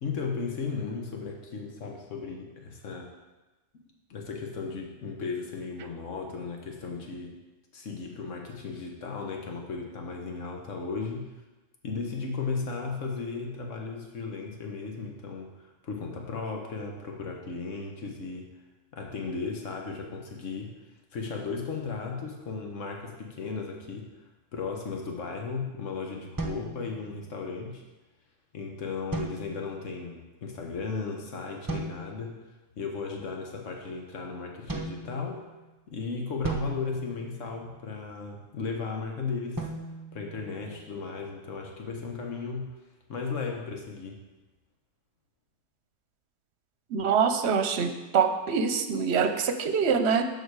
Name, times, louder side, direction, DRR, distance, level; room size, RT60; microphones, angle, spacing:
voice 1, 0.0-3.1 4.1-7.4 7.7-11.3 11.8-18.5 18.9-20.8 21.1-27.8 28.5-32.3 32.8-35.4 35.9-39.7 40.1-42.8 43.1-44.2, left 4 dB, 80° left, 1 dB, 1.4 m, -35 dB
sound 1, 26.4-27.4 29.1-29.9 31.7-32.3 34.7-35.7 36.4-37.9 39.6-41.1, right 2 dB, 20° right, 0.7 m, -38 dB
voice 2, 46.9-50.3, right 6 dB, 65° right, 8 dB, 1.0 m, -25 dB
13.0 x 4.6 x 4.7 m, 1.1 s
omnidirectional pair, 1.3 m